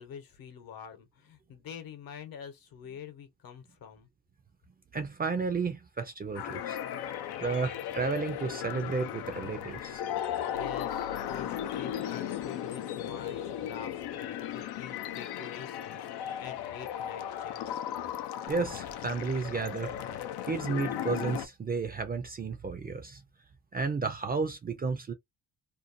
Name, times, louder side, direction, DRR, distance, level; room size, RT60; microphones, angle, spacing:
voice 1, 0.0-4.1 10.5-17.8, left 8 dB, 65° left, 1.0 m, -46 dB
voice 2, 4.9-6.8 7.4-10.0 18.5-19.9 20.4-23.2 23.7-25.1, right 4 dB, 25° right, 0.4 m, -32 dB
sound 1, 6.3-21.5, left 10 dB, 85° left, 0.6 m, -36 dB
2.6 x 2.1 x 2.5 m
cardioid pair, 115°, 38 cm